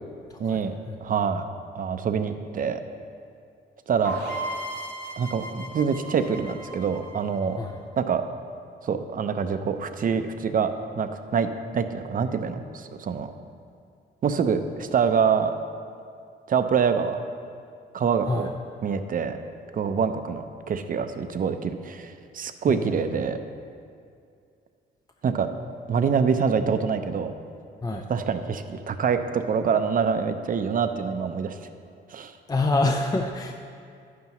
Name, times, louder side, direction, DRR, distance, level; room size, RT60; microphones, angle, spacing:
voice 1, 0.4-0.7 1.0-1.4 1.7-2.8 3.9-4.2 5.2-7.6 8.0-8.2 8.8-13.3 14.2-15.5 16.5-17.2 17.9-18.5 18.8-19.4 19.7-23.4 25.2-25.5 25.9-27.3 27.9-31.6 32.1-32.3, right 6 dB, 45° right, 9 dB, 0.6 m, -25 dB
sound 1, 4.0-7.8, right 1 dB, 55° left, 2.3 m, -36 dB
voice 2, 22.7-23.2 27.8-28.1 32.5-33.5, left 2 dB, 20° left, 3 dB, 0.5 m, -26 dB
10.0 x 9.4 x 3.0 m, 2.4 s
cardioid pair, 90°, 20 cm